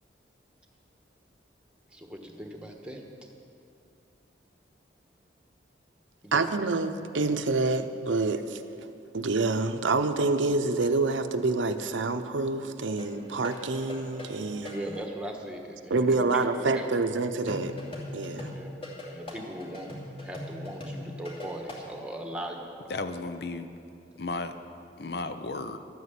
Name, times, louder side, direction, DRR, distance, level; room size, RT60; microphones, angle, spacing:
voice 1, 1.9-3.0 6.2-6.5 14.7-16.9 18.5-18.7 19.1-19.9 20.2-22.9, right 1 dB, 5° right, 2 dB, 1.2 m, -39 dB
voice 2, 6.3-8.6 9.1-14.9 15.9-17.7 18.1-18.5, right 3 dB, 85° right, 8 dB, 0.7 m, -27 dB
sound 1, 13.0-15.0 17.5-21.9, left 2 dB, 30° left, 2.6 m, -40 dB
voice 3, 22.9-23.7 24.2-24.6 25.0-25.8, left 3 dB, 55° left, 9 dB, 0.7 m, -34 dB
12.5 x 9.4 x 8.4 m, 2.6 s
head